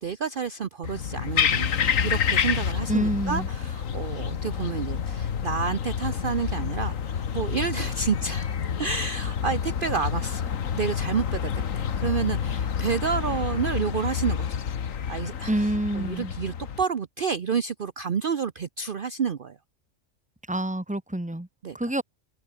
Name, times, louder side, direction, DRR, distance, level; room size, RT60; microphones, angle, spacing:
voice 1, 0.0-14.6 15.1-15.5 15.9-19.6 21.6-21.7, right 6 dB, 45° right, 0.9 m, -30 dB
sound 1, 0.8-16.8, left 7 dB, 85° left, 1.7 m, -28 dB
voice 2, 2.9-3.5 15.5-16.3 20.5-21.5 21.7-22.0, right 1 dB, 5° right, 1.6 m, -27 dB
open air
omnidirectional pair, 1.3 m